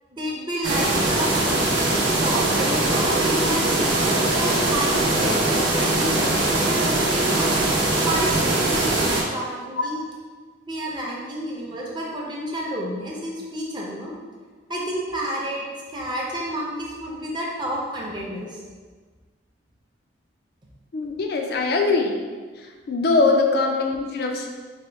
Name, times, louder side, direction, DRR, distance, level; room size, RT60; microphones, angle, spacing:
voice 1, 0.1-1.3 2.2-7.6 8.1-10.0 10.7-14.1 14.7-15.6 15.9-18.6 23.5-23.6, right 1 dB, 25° right, -3 dB, 0.5 m, -30 dB
sound 1, 0.6-9.2, right 2 dB, 80° right, 0.7 m, -21 dB
voice 2, 20.9-22.2 22.6-24.5, left 3 dB, 55° left, 2 dB, 0.4 m, -22 dB
4.2 x 2.2 x 3.3 m, 1.5 s
head